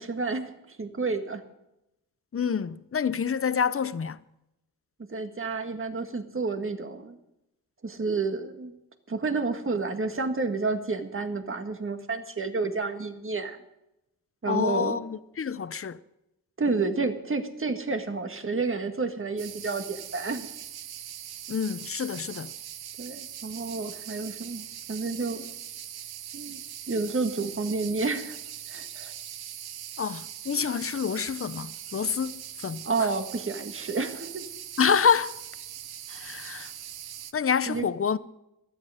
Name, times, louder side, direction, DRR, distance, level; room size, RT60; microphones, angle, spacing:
voice 1, 0.0-1.4 5.1-7.2 7.8-8.7 9.1-13.6 14.4-15.0 16.6-20.5 23.0-25.5 26.3-28.4 28.7-29.1 32.8-34.5 37.7-37.9, right 3 dB, 35° right, 1.8 m, -30 dB
voice 2, 2.3-4.2 14.5-16.0 21.5-22.5 30.0-32.3 32.6-33.1 34.8-35.4 36.1-36.7 37.3-38.2, left 6 dB, 35° left, 0.7 m, -27 dB
sound 1, 19.4-37.3, right 10 dB, 85° right, 0.8 m, -41 dB
16.0 x 12.5 x 5.0 m
cardioid pair, 90°, 37 cm